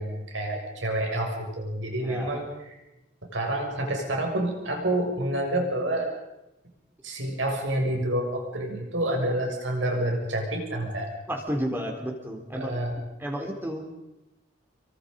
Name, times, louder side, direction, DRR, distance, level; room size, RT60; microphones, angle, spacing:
voice 1, 0.0-2.4 3.2-6.1 7.0-11.1 12.6-12.9, right 1 dB, 80° right, 1 dB, 6.7 m, -28 dB
voice 2, 2.0-2.4 11.3-12.8 13.2-13.8, equal, 10° right, 1 dB, 3.6 m, -32 dB
27.5 x 24.0 x 5.4 m, 0.96 s
head